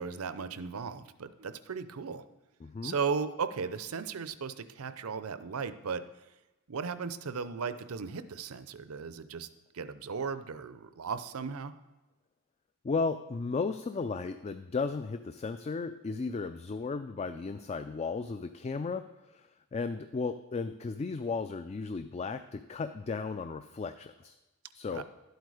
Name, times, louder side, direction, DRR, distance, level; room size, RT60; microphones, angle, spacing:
voice 1, 0.0-2.2 2.8-6.0 6.7-9.5 9.7-11.7 24.9-25.0, right 5 dB, 75° right, 13 dB, 0.6 m, -36 dB
voice 2, 2.6-3.0 12.8-19.0 19.3-24.3 24.7-25.0, left 4 dB, 30° left, 10 dB, 0.3 m, -35 dB
12.0 x 8.0 x 4.9 m, 1.1 s
head